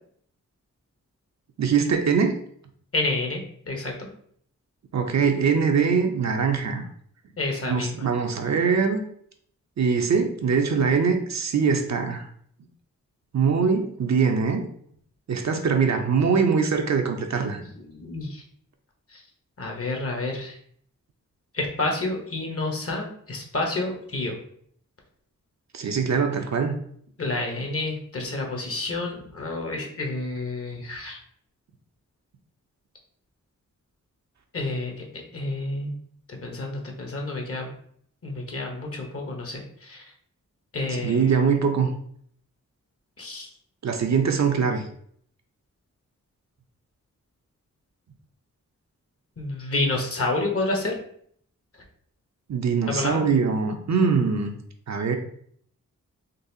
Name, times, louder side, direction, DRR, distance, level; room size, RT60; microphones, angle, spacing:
voice 1, 1.6-2.4 4.9-6.8 7.7-9.0 9.8-12.3 13.3-14.6 15.3-17.6 25.7-26.8 40.9-41.9 43.8-44.8 52.5-54.5 54.9-55.2, right 5 dB, 60° right, 4 dB, 0.6 m, -22 dB
voice 2, 2.9-4.1 7.4-8.1 17.6-18.4 19.1-19.2 19.6-20.6 21.5-24.3 27.2-31.2 34.5-34.9 35.3-35.9 36.3-37.7 38.2-40.0 40.7-41.3 43.2-43.5 49.4-50.9 52.9-53.3, left 2 dB, 45° left, 1 dB, 1.0 m, -29 dB
3.9 x 2.4 x 2.7 m, 0.63 s
cardioid pair, 50°, 32 cm